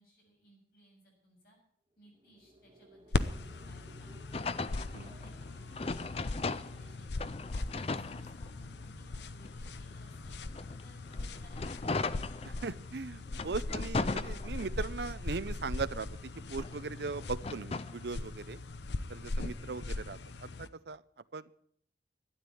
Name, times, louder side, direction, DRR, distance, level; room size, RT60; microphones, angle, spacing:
voice 1, 0.0-1.6 2.0-12.2 19.3-19.5, equal, 55° left, -1 dB, 7.4 m, -63 dB
sound 1, 1.9-10.6, right 1 dB, 25° right, 1.8 m, -60 dB
sound 2, 3.1-20.7, left 2 dB, 80° left, 0.8 m, -39 dB
sound 3, 4.3-6.9 7.2-8.8 9.4-12.9 13.3-14.9 15.4-18.0, left 3 dB, 35° left, 0.5 m, -38 dB
voice 2, 12.6-16.1 16.5-18.6 19.1-20.5 20.9-21.0 21.3-21.5, right 4 dB, 75° right, 15 dB, 0.6 m, -38 dB
13.0 x 9.6 x 8.5 m, 0.65 s
head